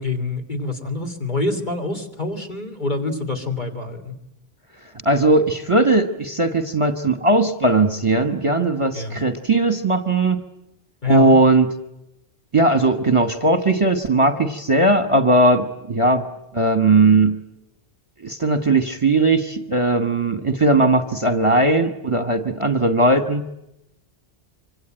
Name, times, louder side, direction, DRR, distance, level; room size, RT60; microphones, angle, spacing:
voice 1, 0.0-4.2 8.9-9.2 11.0-11.4, left 2 dB, 45° left, 5 dB, 3.2 m, -26 dB
voice 2, 5.0-10.4 11.1-11.7 12.5-16.3 16.5-17.4 18.2-23.5, right 2 dB, 30° right, 9 dB, 1.4 m, -18 dB
25.5 x 25.5 x 9.0 m, 0.85 s
omnidirectional pair, 1.1 m